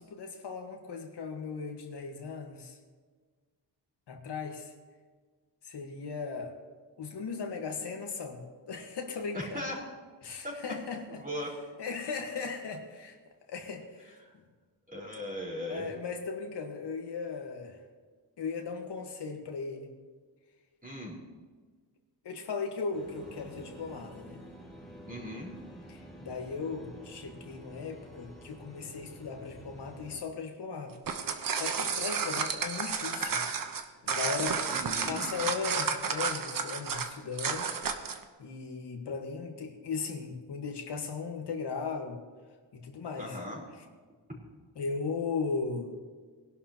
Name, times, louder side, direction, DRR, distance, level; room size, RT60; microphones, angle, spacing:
voice 1, 0.0-2.8 4.1-4.7 5.6-6.5 7.0-9.6 10.2-11.2 11.8-13.2 13.5-14.1 15.7-17.8 18.4-19.9 22.2-24.4 25.9-31.0 31.2-33.4 34.0-34.6 35.0-37.7 38.4-42.2 42.7-43.4 44.7-46.0, left 5 dB, 70° left, 2 dB, 1.6 m, -37 dB
voice 2, 9.3-9.8 10.4-10.6 11.1-11.5 14.2-14.3 14.9-15.9 20.8-21.2 25.1-25.5 34.7-35.2 43.2-43.6, equal, 20° right, -4 dB, 4.4 m, -38 dB
sound 1, 22.9-30.2, equal, ahead, 2.8 m, -49 dB
sound 2, 30.9-38.2, right 6 dB, 50° right, 1.0 m, -32 dB
21.0 x 11.5 x 3.0 m, 1.5 s
wide cardioid pair, 120°, 43 cm